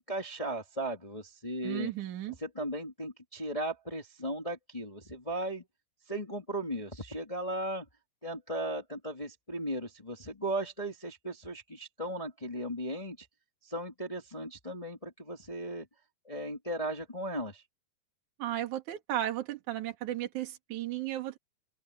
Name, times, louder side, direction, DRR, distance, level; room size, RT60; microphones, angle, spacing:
voice 1, 0.0-1.9 2.4-5.6 6.1-7.8 8.2-13.3 13.6-15.9 16.2-17.6, right 1 dB, 30° left, 0.6 m, -36 dB
voice 2, 1.6-2.4 18.4-21.4, right 13 dB, 55° right, 3.2 m, -34 dB
open air
omnidirectional pair, 4.5 m